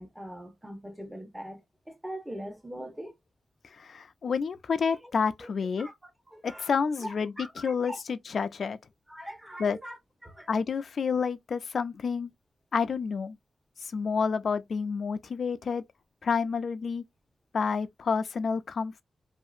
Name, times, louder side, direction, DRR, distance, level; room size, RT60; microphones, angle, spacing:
voice 1, 0.0-3.1 4.9-5.1 5.4-5.5 5.8-6.7 7.0-8.0 9.1-10.5, equal, 10° right, 0.9 m, -42 dB
voice 2, 3.7-5.9 6.4-8.8 9.6-9.8 10.5-12.3 12.7-13.4 13.8-15.8 16.2-17.0 17.5-19.0, left 5 dB, 65° left, 0.3 m, -29 dB
2.6 x 2.4 x 2.4 m
cardioid pair, 65°, 0 cm